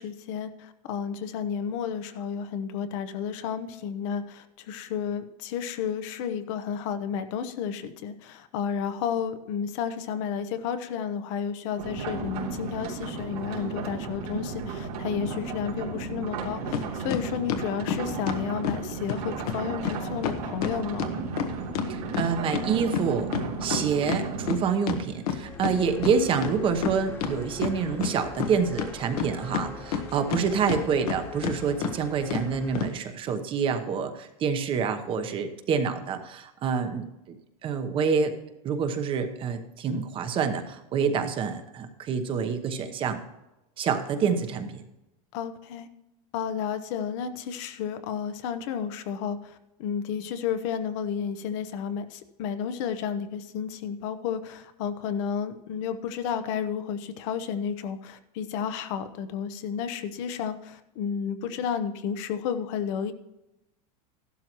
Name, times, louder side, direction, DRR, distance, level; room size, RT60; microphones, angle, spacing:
voice 1, 0.0-21.1 45.3-45.9 46.3-49.5 49.8-63.1, left 7 dB, 55° left, 10 dB, 0.9 m, -32 dB
sound 1, 11.8-24.6, right 4 dB, 90° right, 3.1 m, -34 dB
sound 2, 16.7-16.8 17.1-18.8 19.1-19.2 19.5-19.6 19.8-20.0 20.2-22.7 22.9-25.7 26.0-26.1 26.4-27.3 27.6-28.5 28.8-30.4 30.7-31.2 31.4-31.6 31.8-31.9 32.3-32.4 32.8-32.9, left 8 dB, 85° left, 1.4 m, -29 dB
voice 2, 21.9-23.3 23.6-37.4 37.6-38.3 38.6-43.2 43.8-44.8, right 6 dB, 30° right, 8 dB, 1.0 m, -27 dB
sound 3, 24.9-32.9, left 2 dB, 15° left, 1.3 m, -42 dB
14.0 x 12.0 x 3.0 m, 0.94 s
supercardioid pair, 160°, 19 cm